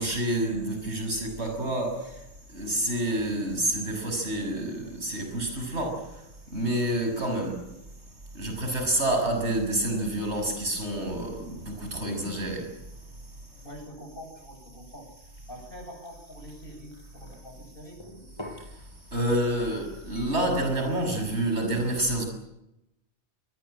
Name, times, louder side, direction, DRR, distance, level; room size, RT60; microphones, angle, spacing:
voice 1, 0.0-7.8 8.3-13.7 18.6-22.3, right 1 dB, 75° right, 7.1 m, -29 dB
voice 2, 13.6-15.1 15.5-18.0, equal, 50° left, 8.2 m, -45 dB
sound 1, 15.1-17.4 18.0-18.7 19.3-19.7 20.1-20.4, left 1 dB, 25° left, 5.3 m, -47 dB
25.0 x 20.0 x 9.0 m
omnidirectional pair, 1.2 m